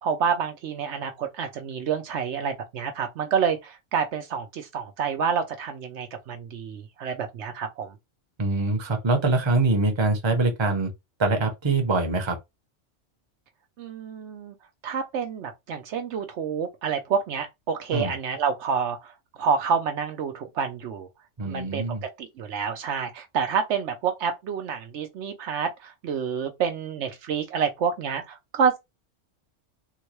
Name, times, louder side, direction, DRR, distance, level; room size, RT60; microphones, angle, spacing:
voice 1, 0.0-8.0 13.8-14.5 14.8-21.1 21.5-21.8 22.2-28.8, right 6 dB, 70° right, 0.9 m, -28 dB
voice 2, 8.4-10.9 11.2-12.4 17.9-18.1 21.4-22.0, right 3 dB, 25° right, 0.7 m, -24 dB
3.7 x 2.2 x 3.0 m
omnidirectional pair, 1.3 m